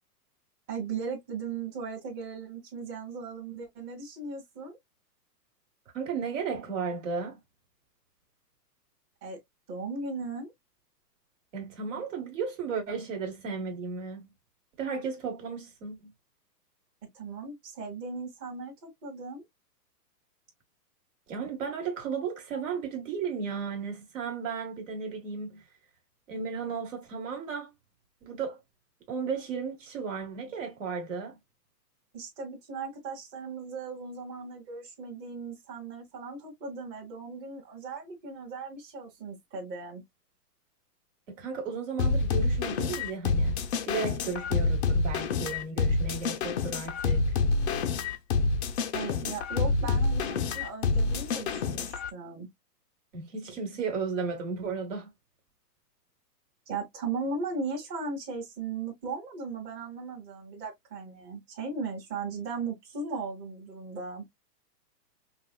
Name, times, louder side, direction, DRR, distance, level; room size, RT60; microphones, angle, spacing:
voice 1, 0.7-4.8 9.2-9.4 9.7-10.5 17.1-19.4 32.1-40.0 48.9-52.5 56.7-64.2, right 4 dB, 20° right, 1.6 m, -37 dB
voice 2, 5.9-7.4 11.5-14.3 14.8-16.1 21.3-25.6 26.3-27.7 28.2-28.6 29.1-31.4 41.3-47.4 53.1-55.1, right 5 dB, 50° right, 1.9 m, -34 dB
sound 1, 42.0-52.1, left 4 dB, 45° left, 0.6 m, -27 dB
5.4 x 2.4 x 2.3 m
hypercardioid pair, 160°, 49 cm